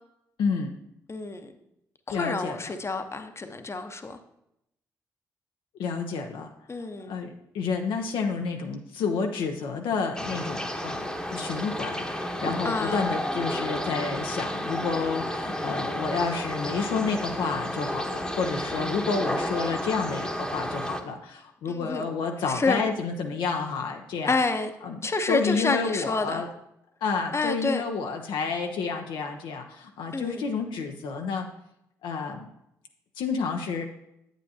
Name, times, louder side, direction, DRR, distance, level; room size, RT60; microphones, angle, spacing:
voice 1, 0.4-0.8 2.1-2.7 5.8-6.5 7.1-24.4 24.8-25.0 25.3-26.5 27.0-31.5 32.0-32.5 33.2-33.8, left 5 dB, 70° left, 3 dB, 0.6 m, -30 dB
voice 2, 1.1-1.5 2.1-4.2 6.7-7.2 12.6-13.1 21.7-22.1 22.4-22.8 24.3-24.7 25.0-26.4 27.3-27.8 30.1-30.5, left 3 dB, 30° left, 8 dB, 0.8 m, -28 dB
sound 1, 10.2-21.0, equal, 10° left, 1.0 m, -31 dB
8.9 x 8.2 x 2.8 m, 0.81 s
hypercardioid pair, 40°, 9 cm